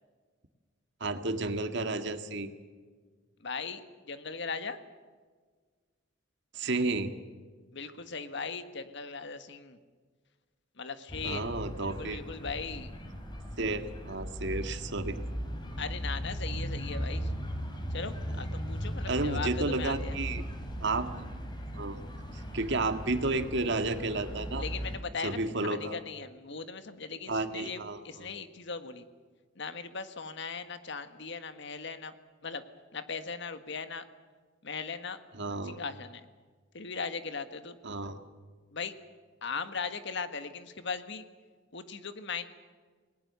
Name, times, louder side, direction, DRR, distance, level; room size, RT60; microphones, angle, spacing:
voice 1, 1.0-2.5 6.5-7.1 11.2-12.2 13.6-15.2 19.1-20.4 20.8-21.3 21.7-22.0 22.3-24.6 25.2-26.0 27.3-28.3 35.3-35.8 37.8-38.2, right 2 dB, 65° right, 8 dB, 1.8 m, -32 dB
voice 2, 3.4-3.8 4.1-4.8 7.7-9.8 10.8-11.4 11.8-12.9 15.8-17.4 17.9-20.2 24.6-27.8 28.0-29.1 29.6-32.1 32.4-32.6 32.9-34.1 34.6-35.2 35.6-36.2 36.7-37.8 38.7-38.9 39.4-41.2 41.7-42.5, left 5 dB, 65° left, 10 dB, 1.7 m, -38 dB
sound 1, 11.1-25.0, equal, 25° left, 3.3 m, -37 dB
28.5 x 20.0 x 6.9 m, 1.5 s
head